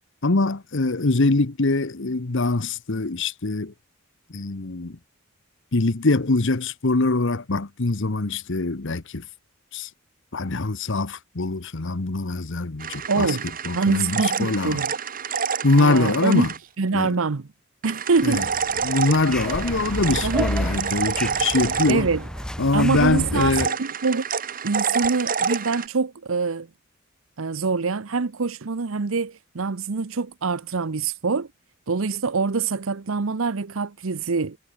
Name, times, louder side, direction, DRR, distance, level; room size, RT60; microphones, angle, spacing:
voice 1, 0.2-3.7 4.3-5.0 5.7-9.3 9.7-9.9 10.3-13.4 13.6-14.8 15.6-16.5 16.9-17.2 18.2-18.4 18.8-22.1 22.6-23.8, left 3 dB, 60° left, 1.1 m, -23 dB
sound 1, 12.8-16.6 17.8-22.5 23.4-25.9, right 6 dB, 40° right, 1.6 m, -28 dB
voice 2, 13.1-13.4 13.7-14.9 15.8-16.5 16.8-17.5 17.8-18.5 20.2-20.5 21.9-22.2 22.7-24.3 24.6-26.7 27.4-31.5 31.9-34.6, right 4 dB, 70° right, 0.8 m, -24 dB
sound 2, 18.2-23.7, equal, 5° left, 2.6 m, -31 dB
head